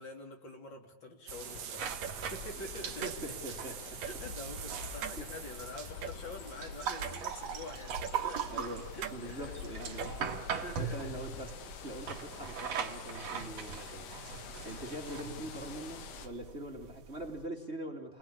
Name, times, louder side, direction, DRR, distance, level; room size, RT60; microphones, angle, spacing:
voice 1, 0.0-3.7 4.1-8.7 9.0-9.5 10.6-11.1, left 2 dB, 35° left, 4 dB, 3.5 m, -46 dB
sound 1, 1.3-16.3, left 8 dB, 75° left, 3.2 m, -48 dB
sound 2, 1.3-7.5 8.0-8.1 9.0-9.2 9.9-10.2, right 9 dB, 75° right, 2.8 m, -43 dB
sound 3, 1.8-17.5, right 7 dB, 55° right, 2.6 m, -41 dB
voice 2, 3.0-4.0 5.2-5.3 8.5-18.2, right 1 dB, 20° right, 2 dB, 2.2 m, -43 dB
30.0 x 21.0 x 8.6 m, 0.89 s
omnidirectional pair, 3.9 m